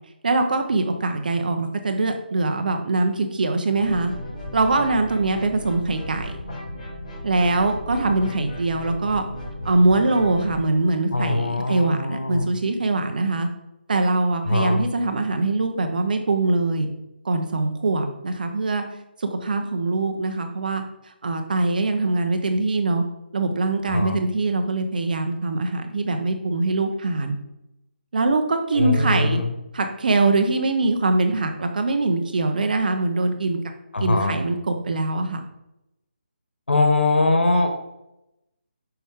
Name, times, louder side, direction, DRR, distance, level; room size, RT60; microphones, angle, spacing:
voice 1, 0.2-4.1 4.5-6.3 7.2-9.2 9.6-13.5 13.9-16.9 17.2-18.8 19.2-20.8 21.2-23.0 23.3-27.3 28.1-29.4 29.7-33.6 34.0-35.4, right 2 dB, 50° right, 6 dB, 1.0 m, -22 dB
sound 1, 3.7-10.7, left 1 dB, 40° left, 2.0 m, -35 dB
voice 2, 11.1-12.5 14.4-14.8 23.9-24.2 28.7-29.5 33.9-34.4 36.7-37.7, left 2 dB, 85° left, 4 dB, 1.4 m, -21 dB
6.1 x 5.7 x 3.7 m, 0.89 s
figure-of-eight pair, 165°, 6 cm